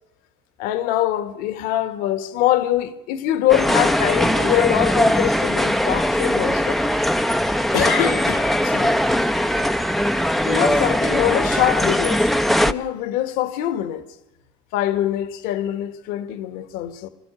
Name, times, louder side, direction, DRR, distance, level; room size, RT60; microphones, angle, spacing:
voice 1, 0.6-6.8 7.7-9.0 10.4-12.3 12.6-14.0 14.7-17.1, left 13 dB, 75° left, 1.6 m, -23 dB
sound 1, 3.5-12.7, equal, ahead, 0.8 m, -20 dB
23.5 x 13.5 x 8.9 m
hypercardioid pair, 60°, 15 cm